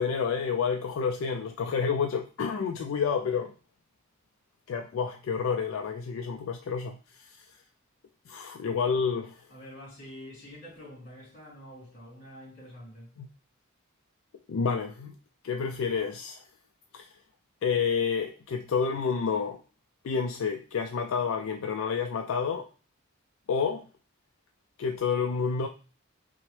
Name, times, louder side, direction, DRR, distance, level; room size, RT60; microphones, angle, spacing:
voice 1, 0.0-3.5 4.7-7.5 8.3-9.4 13.2-13.3 14.5-15.1 15.4-16.4 16.9-17.1 17.6-19.6 20.0-22.7 23.5-23.9 24.8-25.7, left 6 dB, 70° left, 0.4 m, -29 dB
voice 2, 9.5-13.1, equal, 45° left, 2.2 m, -47 dB
5.9 x 2.1 x 3.1 m
head